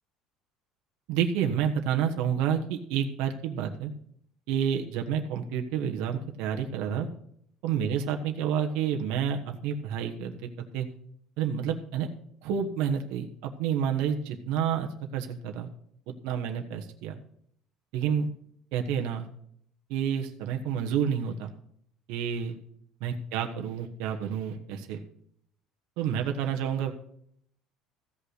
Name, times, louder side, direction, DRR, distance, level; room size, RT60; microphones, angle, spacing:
voice 1, 1.1-3.9 4.5-7.1 7.6-10.9 11.4-12.1 12.4-15.7 16.2-17.2 17.9-18.3 18.7-19.3 19.9-21.5 22.1-22.5 23.0-25.0 26.0-26.9, right 8 dB, 65° right, 3 dB, 1.2 m, -29 dB
15.0 x 5.5 x 6.5 m, 0.67 s
cardioid pair, 180°, 0 cm